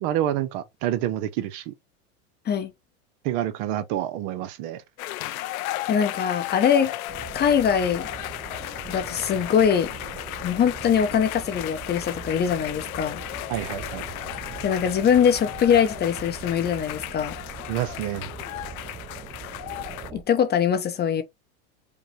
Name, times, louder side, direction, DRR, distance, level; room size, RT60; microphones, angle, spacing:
voice 1, 0.0-1.7 3.2-4.8 13.5-14.0 17.7-18.3, right 12 dB, 55° right, 0.7 m, -28 dB
sound 1, 5.0-20.1, left 15 dB, 75° left, 0.6 m, -35 dB
voice 2, 5.9-6.9 7.3-8.1 8.9-9.9 10.4-13.2 14.6-17.4 20.1-21.2, left 8 dB, 25° left, 0.6 m, -22 dB
sound 2, 7.1-20.2, right 6 dB, 20° right, 0.7 m, -41 dB
5.1 x 2.1 x 3.1 m
hypercardioid pair, 110°, 42 cm